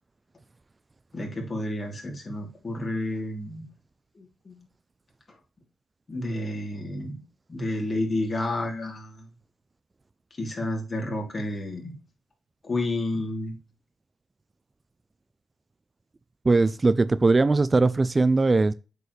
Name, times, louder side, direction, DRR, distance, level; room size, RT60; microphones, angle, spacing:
voice 1, 1.1-3.6 4.1-4.6 6.1-7.2 7.5-9.3 10.4-11.9 12.6-13.6, left 1 dB, 40° left, 2.9 m, -30 dB
voice 2, 16.4-18.7, right 3 dB, 30° right, 0.4 m, -20 dB
8.2 x 4.6 x 3.2 m
supercardioid pair, 60°, 0 cm